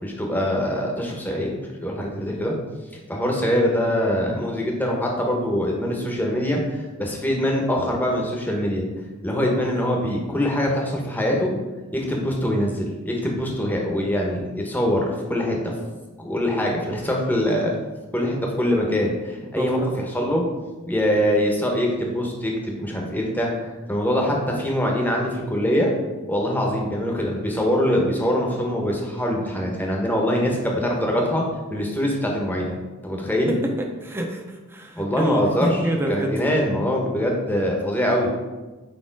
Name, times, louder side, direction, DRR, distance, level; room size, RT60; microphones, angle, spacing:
voice 1, 0.0-2.6 3.1-6.6 7.0-8.8 9.2-11.5 11.9-15.6 16.2-17.7 18.1-20.4 20.9-25.9 26.3-31.4 31.7-32.7 33.0-33.5 35.0-35.7 36.1-38.3, equal, 10° left, -1 dB, 0.9 m, -23 dB
voice 2, 19.4-19.9 33.5-33.6 34.0-36.4, right 1 dB, 10° right, 2 dB, 0.7 m, -26 dB
4.7 x 4.4 x 4.6 m, 1.2 s
head